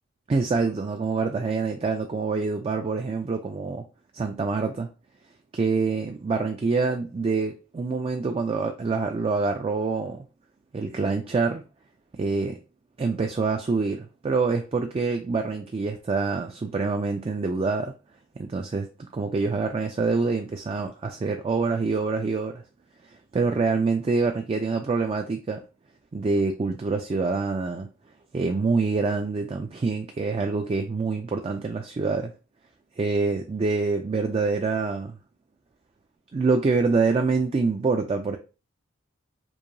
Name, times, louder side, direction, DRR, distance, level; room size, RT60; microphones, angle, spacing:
voice 1, 0.3-3.9 4.1-4.9 5.5-10.2 10.7-11.6 12.1-12.6 13.0-17.9 18.4-22.6 23.3-25.6 26.1-27.9 28.3-32.3 33.0-35.2 36.3-38.4, right 4 dB, 30° right, 0.3 m, -26 dB
4.7 x 2.6 x 2.6 m
head